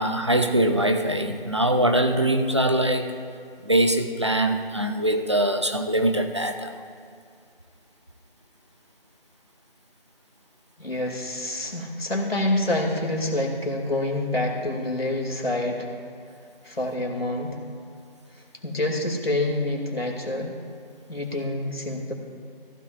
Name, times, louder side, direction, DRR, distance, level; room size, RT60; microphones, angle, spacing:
voice 1, 0.0-3.1 3.6-6.7, right 1 dB, 30° right, 6 dB, 0.6 m, -22 dB
voice 2, 10.8-15.9 16.6-17.6 18.6-20.6 21.1-22.1, left 1 dB, 80° left, 0 dB, 2.6 m, -27 dB
15.0 x 12.0 x 2.5 m, 2.3 s
figure-of-eight pair, 160°, 29 cm